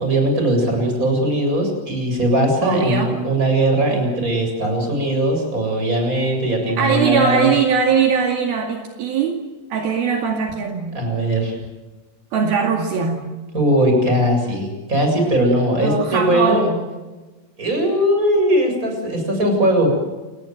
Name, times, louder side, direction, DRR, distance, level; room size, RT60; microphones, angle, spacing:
voice 1, 0.0-7.5 10.9-11.5 13.5-16.7 17.6-19.9, right 1 dB, 20° right, 2 dB, 7.8 m, -19 dB
voice 2, 2.6-3.2 6.8-9.4 9.7-11.0 12.3-13.2 15.8-16.8, right 6 dB, 65° right, 3 dB, 4.0 m, -20 dB
29.0 x 20.0 x 7.7 m, 1.2 s
omnidirectional pair, 4.6 m